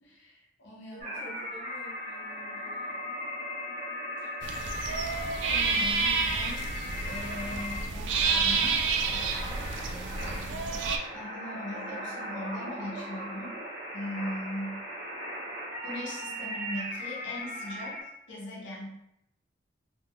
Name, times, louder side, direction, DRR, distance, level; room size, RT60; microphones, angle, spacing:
voice 1, 0.0-1.3 5.5-6.6 7.0-8.8 11.1-13.6 13.9-14.8 15.8-19.0, left 1 dB, 70° left, -4 dB, 0.8 m, -39 dB
voice 2, 0.9-3.1 9.0-9.6, equal, 25° left, -6 dB, 0.6 m, -51 dB
sound 1, 1.0-18.0, left 1 dB, 35° right, 1.2 m, -38 dB
sound 2, 4.4-11.0, right 4 dB, 65° right, 0.3 m, -29 dB
3.5 x 2.3 x 2.2 m, 0.81 s
head